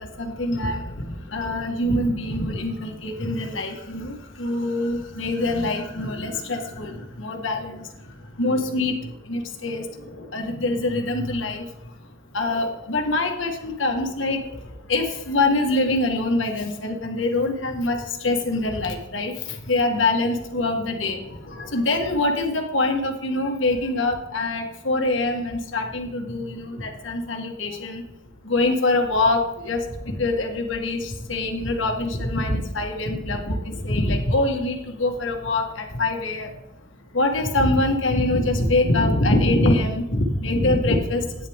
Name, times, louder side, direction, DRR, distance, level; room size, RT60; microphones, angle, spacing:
voice 1, 0.2-7.9 8.4-11.6 12.3-14.6 14.9-28.0 28.5-36.5 37.1-41.2, left 2 dB, 70° left, 3 dB, 1.7 m, -24 dB
12.0 x 9.6 x 3.6 m, 0.87 s
head